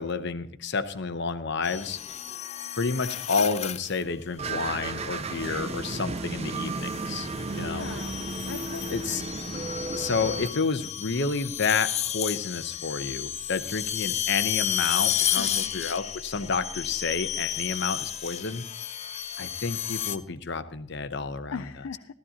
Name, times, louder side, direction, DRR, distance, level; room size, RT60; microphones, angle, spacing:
voice 1, 0.0-2.0 2.8-7.3 7.5-7.9 8.9-9.2 10.0-18.6 19.4-21.5, left 4 dB, 60° left, 10 dB, 0.8 m, -30 dB
sound 1, 1.6-4.0 5.4-5.8 6.6-20.2, left 10 dB, 35° left, 0.5 m, -32 dB
sound 2, 4.4-10.5, right 3 dB, 30° right, 0.5 m, -34 dB
voice 2, 7.3-9.3 15.4-15.8 21.5-22.1, left 5 dB, 90° left, 8 dB, 0.5 m, -41 dB
15.0 x 14.0 x 2.8 m, 0.64 s
head